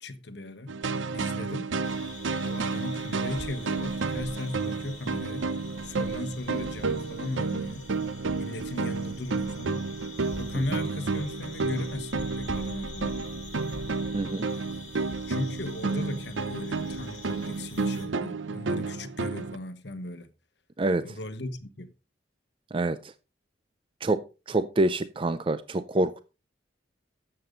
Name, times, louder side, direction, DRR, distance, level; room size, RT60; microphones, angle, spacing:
voice 1, 0.0-0.7 1.1-1.7 2.4-5.5 5.8-7.9 8.3-9.8 10.4-13.2 15.3-20.3 21.0-21.9, left 1 dB, 60° left, 1.2 m, -37 dB
sound 1, 0.7-19.6, right 4 dB, 85° right, 0.7 m, -31 dB
sound 2, 1.8-18.1, left 3 dB, 40° left, 3.3 m, -45 dB
voice 2, 14.1-14.5 20.8-21.0 22.7-23.0 24.0-24.2 24.5-26.2, right 2 dB, 25° right, 0.4 m, -26 dB
12.5 x 7.8 x 3.9 m
head